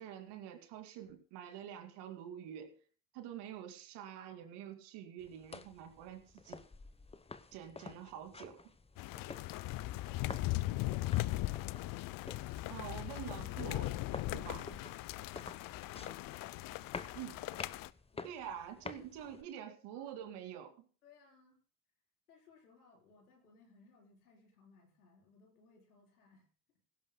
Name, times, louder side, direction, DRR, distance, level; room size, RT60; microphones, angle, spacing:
voice 1, 0.0-2.7 3.1-6.6 7.5-8.7 12.7-14.0 14.3-14.8 17.1-17.4 18.2-20.7, right 10 dB, 65° right, 6 dB, 2.6 m, -47 dB
sound 1, 5.2-19.4, left 4 dB, 15° left, 1.0 m, -51 dB
sound 2, 9.0-17.9, left 17 dB, 50° left, 0.6 m, -38 dB
voice 2, 17.7-18.4 18.9-20.3 21.0-21.6 22.3-26.5, left 4 dB, 90° left, 0 dB, 4.6 m, -65 dB
17.0 x 16.5 x 2.3 m, 0.40 s
hypercardioid pair, 65°, 43 cm